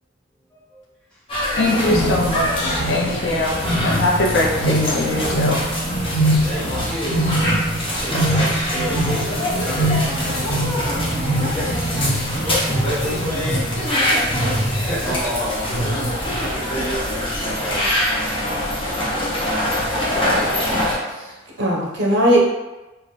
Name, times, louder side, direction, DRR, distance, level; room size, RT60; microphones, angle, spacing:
voice 1, 0.5-1.2 6.2-10.1 10.3-15.7 16.1-18.7, equal, 5° left, -9 dB, 1.1 m, -32 dB
sound 1, 1.3-21.0, equal, 30° left, 0.9 m, -22 dB
voice 2, 1.6-3.6 3.8-5.6 12.5-12.6, left 2 dB, 70° left, -1 dB, 0.6 m, -21 dB
voice 3, 21.1-22.4, equal, 75° right, -3 dB, 0.9 m, -19 dB
3.4 x 2.2 x 4.0 m, 1.0 s
head